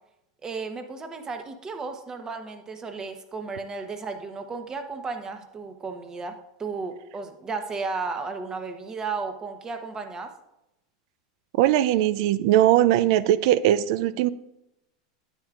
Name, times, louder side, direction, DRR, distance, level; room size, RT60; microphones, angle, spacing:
voice 1, 0.4-10.3, right 4 dB, 25° right, 7 dB, 1.0 m, -34 dB
voice 2, 11.6-14.3, right 13 dB, 65° right, 16 dB, 0.4 m, -20 dB
9.3 x 8.7 x 2.5 m, 0.89 s
hypercardioid pair, 110°, 3 cm